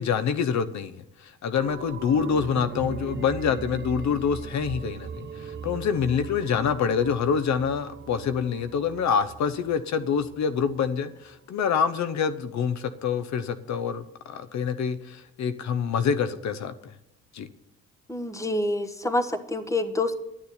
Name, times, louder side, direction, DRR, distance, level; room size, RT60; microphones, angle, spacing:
voice 1, 0.0-16.9 17.3-17.5, left 7 dB, 65° left, 13 dB, 0.8 m, -26 dB
sound 1, 1.5-10.9 11.2-11.3, right 5 dB, 40° right, 1.0 m, -39 dB
voice 2, 18.1-20.2, left 2 dB, 10° left, 10 dB, 1.2 m, -27 dB
11.5 x 7.0 x 9.4 m, 0.82 s
cardioid pair, 90°, 30 cm